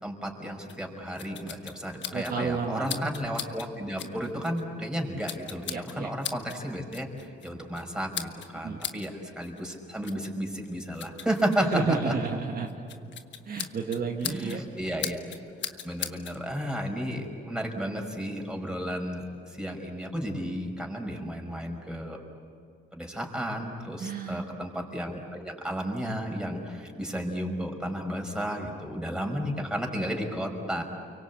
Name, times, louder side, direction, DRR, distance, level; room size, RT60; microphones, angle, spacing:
voice 1, 0.0-12.1 14.2-15.2 15.7-22.2 22.9-30.8, equal, 5° right, 1 dB, 5.4 m, -33 dB
sound 1, 0.7-16.4, left 9 dB, 65° left, 1.4 m, -41 dB
voice 2, 2.1-3.0 5.7-6.1 8.5-8.8 11.7-12.7 13.5-14.6 24.0-24.4, right 5 dB, 50° right, 1 dB, 2.2 m, -31 dB
30.0 x 24.0 x 8.4 m, 2.3 s
cardioid pair, 90°, 20 cm